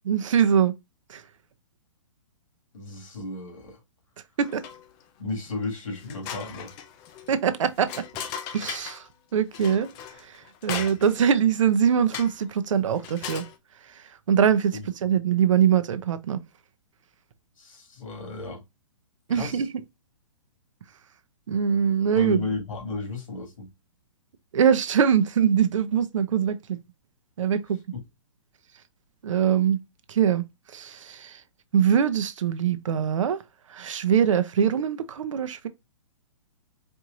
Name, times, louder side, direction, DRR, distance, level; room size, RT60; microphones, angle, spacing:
voice 1, 0.0-0.7 1.1-1.2 4.4-4.6 7.3-8.0 8.5-9.1 9.3-9.9 10.2-13.4 14.3-16.4 19.3-19.7 21.5-22.4 24.5-26.8 27.4-27.8 29.2-29.8 30.1-30.4 30.7-31.4 31.7-33.4 33.7-35.7, right 8 dB, 70° right, 0.7 m, -23 dB
voice 2, 2.7-3.8 5.2-6.7 14.7-14.9 17.6-18.6 19.3-19.7 22.1-23.7 27.9-28.0, left 3 dB, 80° left, 2.0 m, -33 dB
sound 1, 4.4-5.0 5.5-5.6 6.0-9.1 9.5-11.3 12.1-12.5 12.9-13.6, left 8 dB, 25° left, 0.5 m, -38 dB
4.4 x 3.0 x 2.5 m
hypercardioid pair, 140°, 17 cm